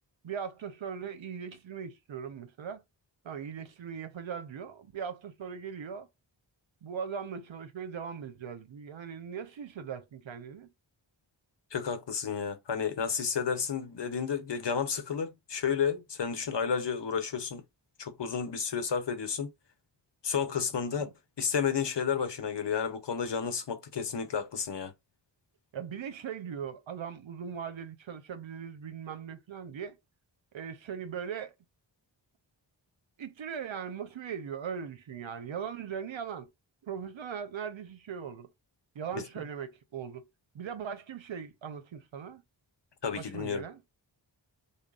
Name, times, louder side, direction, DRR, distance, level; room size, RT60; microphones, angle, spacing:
voice 1, 0.2-2.8 3.2-6.1 6.8-10.7 20.9-21.1 25.7-30.0 30.5-31.5 33.2-36.5 36.8-38.5 38.9-40.3 40.5-42.4 43.2-43.8, right 7 dB, 80° right, 0.7 m, -39 dB
voice 2, 11.7-17.6 18.0-19.5 20.2-21.1 21.4-24.9 39.1-39.2 43.0-43.6, left 7 dB, 65° left, 0.8 m, -31 dB
3.8 x 2.0 x 3.8 m
wide cardioid pair, 80°, 46 cm